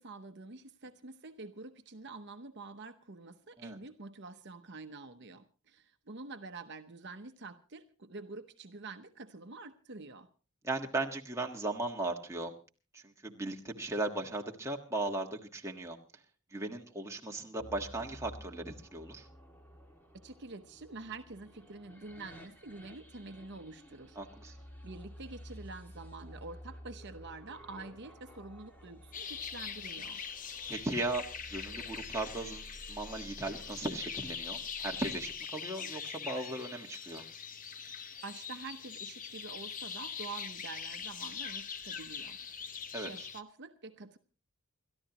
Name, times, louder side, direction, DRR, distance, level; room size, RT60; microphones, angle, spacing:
voice 1, 0.0-10.3 20.2-24.2 24.4-24.6 24.8-30.2 38.2-44.2, right 3 dB, 50° right, 7 dB, 0.9 m, -47 dB
voice 2, 10.6-12.5 12.9-16.0 16.5-19.3 24.2-24.5 30.7-31.2 31.5-37.2 42.9-43.1, right 2 dB, 15° right, 1 dB, 1.5 m, -37 dB
sound 1, 17.6-35.4, equal, 10° left, 2.0 m, -52 dB
sound 2, 29.1-43.4, left 6 dB, 35° left, 0.8 m, -42 dB
28.5 x 13.0 x 3.0 m, 0.35 s
head